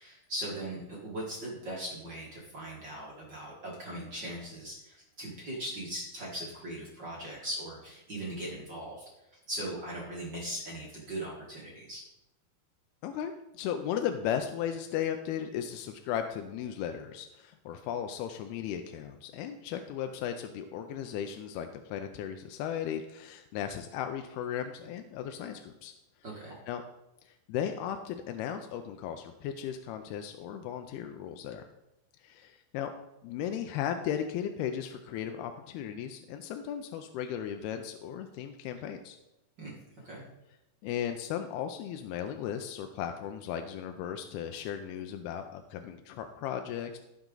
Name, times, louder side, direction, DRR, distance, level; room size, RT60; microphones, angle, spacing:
voice 1, 0.0-9.0 9.5-12.0 26.2-26.6 39.6-39.7 40.0-40.2, right 1 dB, 40° right, -5 dB, 1.8 m, -39 dB
voice 2, 13.0-25.9 26.7-26.8 27.2-31.7 32.2-32.9 33.2-39.2 40.8-47.0, left 9 dB, 90° left, 6 dB, 2.6 m, -36 dB
16.0 x 6.0 x 3.9 m, 0.95 s
omnidirectional pair, 4.4 m